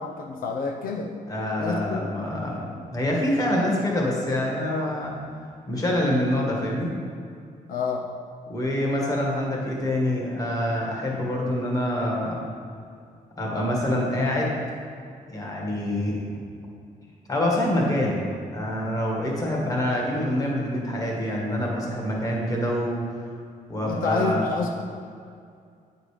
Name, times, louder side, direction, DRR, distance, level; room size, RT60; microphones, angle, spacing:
voice 1, 0.0-1.1 1.6-2.1 7.7-8.1 23.8-24.8, left 4 dB, 80° left, 2 dB, 0.6 m, -28 dB
voice 2, 1.3-5.2 5.7-6.9 8.5-12.4 13.4-14.6 15.3-16.4 17.3-18.2 18.5-23.2 23.7-24.5, left 1 dB, 25° left, -2 dB, 1.6 m, -26 dB
8.9 x 5.3 x 4.9 m, 2.3 s
cardioid pair, 165°, 15 cm